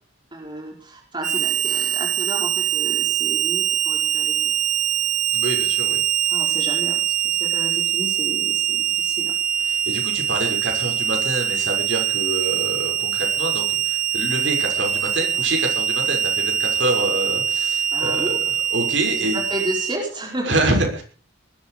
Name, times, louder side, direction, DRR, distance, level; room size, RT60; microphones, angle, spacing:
voice 1, 0.3-4.5 6.3-9.3 17.9-18.4 19.3-20.5, right 1 dB, 25° right, 0 dB, 4.5 m, -32 dB
Harmonica, 1.2-20.0, right 9 dB, 40° right, 1.1 m, -23 dB
voice 2, 5.3-6.0 9.7-18.4 18.7-19.4 20.4-21.0, right 2 dB, 70° right, 2 dB, 6.5 m, -26 dB
20.0 x 14.0 x 5.1 m, 0.39 s
head